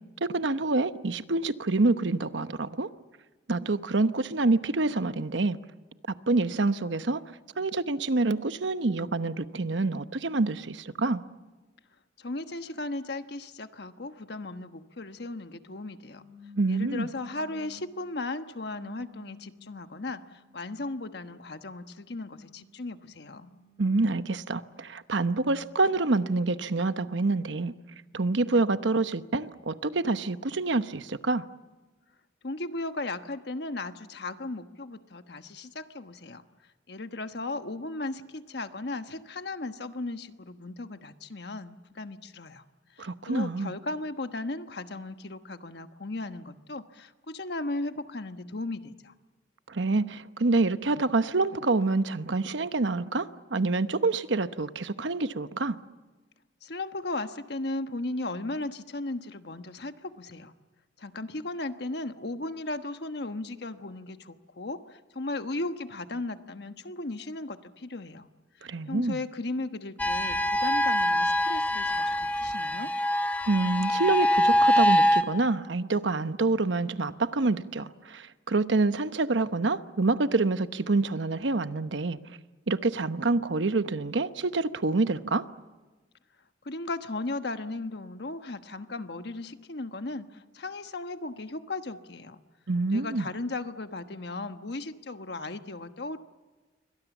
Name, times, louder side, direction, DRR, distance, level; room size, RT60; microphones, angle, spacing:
voice 1, 0.2-2.9 3.5-5.6 6.3-7.2 7.6-11.2 16.6-17.1 23.8-27.7 28.1-31.5 43.0-43.7 49.7-55.8 68.6-69.2 73.5-82.2 82.7-85.4 92.7-93.3, right 3 dB, 85° right, 1.0 m, -27 dB
voice 2, 12.2-16.2 16.7-23.5 32.4-36.4 36.9-42.6 42.9-49.1 56.6-60.5 61.0-68.3 68.6-72.9 86.6-92.4 92.9-96.2, left 2 dB, 60° left, 1.2 m, -36 dB
sound 1, 16.0-18.0 18.6-21.3 21.9-24.2, left 3 dB, 30° right, 6.5 m, -54 dB
sound 2, 70.0-75.2, equal, 10° left, 1.2 m, -24 dB
28.0 x 24.5 x 7.2 m
head